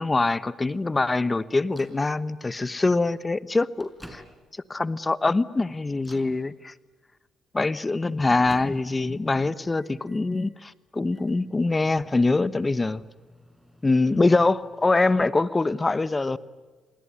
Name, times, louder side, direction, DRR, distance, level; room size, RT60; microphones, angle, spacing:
voice 1, 0.0-4.2 4.7-6.7 7.5-13.0 13.8-16.4, left 3 dB, 20° left, 17 dB, 1.1 m, -24 dB
Microwave oven, 1.7-2.0 3.0-3.1 3.5-4.7 5.2-5.5 6.0-6.4 7.6-9.1 9.4-10.5 11.1-15.3, equal, ahead, 5.2 m, -51 dB
28.5 x 20.5 x 9.8 m, 1.3 s
cardioid pair, 90°, 0 cm